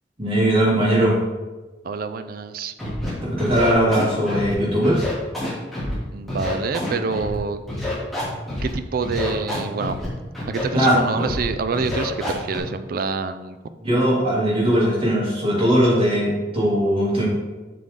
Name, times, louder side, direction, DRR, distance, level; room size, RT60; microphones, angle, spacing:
voice 1, 0.2-1.2 3.2-5.1 10.7-11.2 13.8-17.3, equal, 35° right, -5 dB, 2.6 m, -19 dB
voice 2, 1.8-2.7 6.1-7.6 8.6-10.0 10.5-13.6, right 4 dB, 55° right, 10 dB, 0.4 m, -26 dB
Scratching (performance technique), 2.8-3.1 3.4-4.5 4.8-5.9 6.3-7.4 7.7-8.7 9.0-10.1 10.3-10.9 11.2-11.4 11.7-12.6, left 1 dB, ahead, 2.6 m, -28 dB
7.7 x 6.6 x 3.7 m, 1.2 s
head